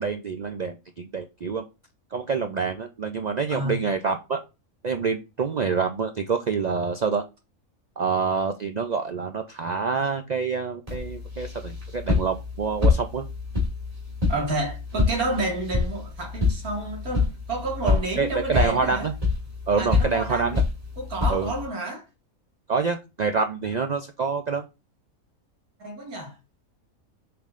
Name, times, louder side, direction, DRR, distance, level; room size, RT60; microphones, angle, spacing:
voice 1, 0.0-1.6 2.1-4.4 4.8-7.2 8.0-13.3 17.8-19.1 19.7-20.6 21.3-21.5 22.7-24.6, right 5 dB, 75° right, 0.4 m, -27 dB
voice 2, 3.5-3.8 14.3-19.1 19.8-20.6 21.0-22.0 25.8-26.4, right 2 dB, 90° right, 2.4 m, -30 dB
sound 1, 10.9-21.7, left 4 dB, 25° right, 2.5 m, -27 dB
6.8 x 5.8 x 2.5 m
omnidirectional pair, 1.5 m